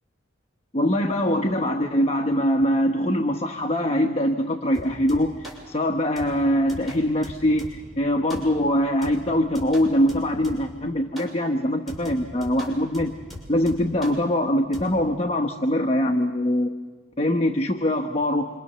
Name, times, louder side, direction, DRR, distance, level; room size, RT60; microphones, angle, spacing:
voice 1, 0.7-13.1 13.5-16.7 17.2-18.5, equal, 30° left, 4 dB, 1.2 m, -23 dB
sound 1, 4.7-5.7 6.2-8.0 8.3-8.7 9.0-10.8 11.2-11.4 11.9-14.2 14.7-14.9, left 1 dB, ahead, 6.7 m, -40 dB
27.0 x 27.0 x 6.9 m, 1.4 s
head